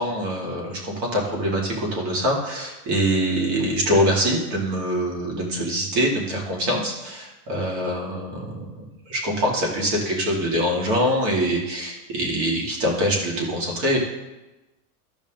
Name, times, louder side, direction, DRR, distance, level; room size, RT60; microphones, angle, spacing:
voice 1, 0.0-8.6 9.1-14.0, equal, 40° right, -2 dB, 3.0 m, -24 dB
15.0 x 5.1 x 3.9 m, 1.0 s
supercardioid pair, 155°, 43 cm